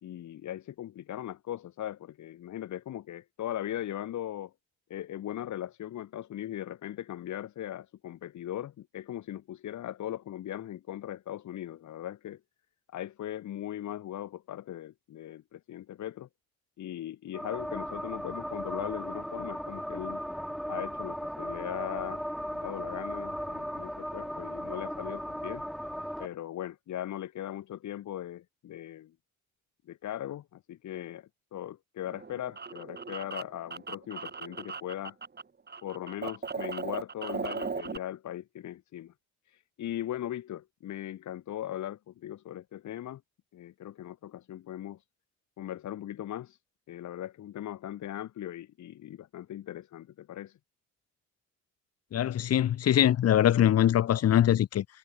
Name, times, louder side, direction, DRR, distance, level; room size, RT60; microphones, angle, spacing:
voice 1, 0.0-4.5 4.9-12.4 12.9-16.3 16.8-20.2 20.7-22.2 22.6-25.6 26.2-29.1 29.9-35.2 35.8-39.1 39.5-43.2 43.5-45.0 45.6-46.6 46.9-50.6, left 12 dB, 70° left, 2.7 m, -39 dB
sound 1, 17.3-26.3, equal, ahead, 1.1 m, -37 dB
sound 2, 32.0-35.4 35.7-38.0, right 5 dB, 35° right, 5.1 m, -37 dB
voice 2, 52.1-54.8, left 11 dB, 55° left, 0.9 m, -23 dB
cardioid pair, 90°, 30 cm